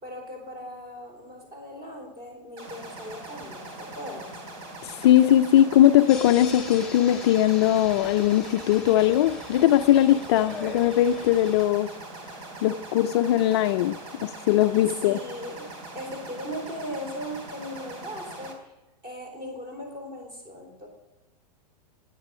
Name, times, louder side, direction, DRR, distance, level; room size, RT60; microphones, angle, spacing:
voice 1, 0.0-4.3 15.0-18.7 19.0-20.9, equal, 20° right, 4.0 m, -38 dB
sound 1, 2.6-18.5, right 2 dB, 40° right, 3.4 m, -42 dB
voice 2, 4.8-11.9 12.6-15.2, left 12 dB, 40° left, 0.5 m, -20 dB
sound 2, 6.1-11.7, left 3 dB, 5° left, 1.9 m, -41 dB
13.0 x 9.6 x 6.2 m
supercardioid pair, 165°, 21 cm